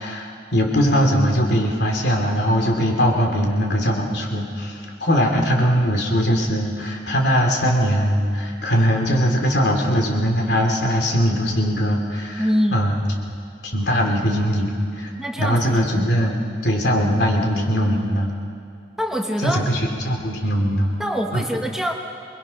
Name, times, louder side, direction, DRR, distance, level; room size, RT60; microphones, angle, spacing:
voice 1, 0.0-12.4 12.7-13.0 13.6-15.1 15.4-18.3 19.4-20.9 21.3-21.4, equal, 65° left, 1 dB, 3.1 m, -20 dB
voice 2, 12.4-12.8 15.2-16.1 19.0-19.6 21.0-21.9, equal, 5° right, 1 dB, 1.2 m, -24 dB
27.0 x 21.0 x 6.0 m, 2.4 s
head